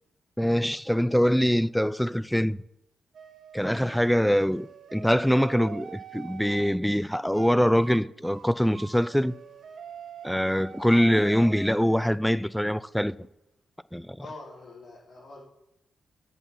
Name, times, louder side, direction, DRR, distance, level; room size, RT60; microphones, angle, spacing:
voice 1, 0.4-2.6 3.5-9.3 10.2-13.2 13.9-14.2, equal, 5° left, 0.3 m, -24 dB
sound 1, 3.1-6.7 7.3-7.6 7.8-8.0 8.2-12.2, right 7 dB, 65° right, 0.8 m, -45 dB
voice 2, 14.2-15.4, left 2 dB, 60° left, 4.5 m, -44 dB
8.3 x 7.3 x 6.0 m
cardioid pair, 80°, 0 cm